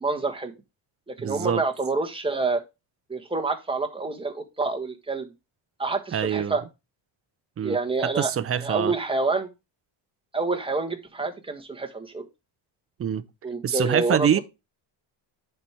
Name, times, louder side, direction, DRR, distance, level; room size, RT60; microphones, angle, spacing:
voice 1, 0.0-0.5 1.1-2.6 3.1-5.3 5.8-6.6 7.6-8.3 8.6-9.5 10.3-12.2 13.4-14.4, right 3 dB, 10° right, 1.3 m, -27 dB
voice 2, 1.2-1.6 6.1-6.6 7.6-7.8 8.2-8.9 13.0-13.2 13.6-14.4, right 9 dB, 30° right, 0.6 m, -25 dB
10.5 x 4.5 x 3.4 m
cardioid pair, 125°, 50 cm